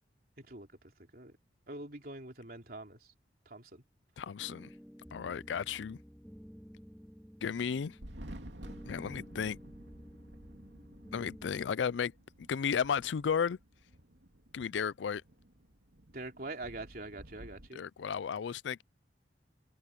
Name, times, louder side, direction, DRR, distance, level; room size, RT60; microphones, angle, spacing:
voice 1, 0.4-0.7 1.0-1.4 1.7-3.1 3.5-3.8 16.1-17.8, right 2 dB, 55° right, 3.5 m, -44 dB
voice 2, 4.2-4.7 5.1-6.0 7.4-8.0 8.8-9.6 11.1-12.1 12.4-13.6 14.5-15.2 17.7-18.8, left 7 dB, 90° left, 0.4 m, -34 dB
sound 1, 4.4-11.6, equal, ahead, 3.3 m, -53 dB
Thunder, 7.9-17.7, right 1 dB, 80° right, 3.0 m, -52 dB
head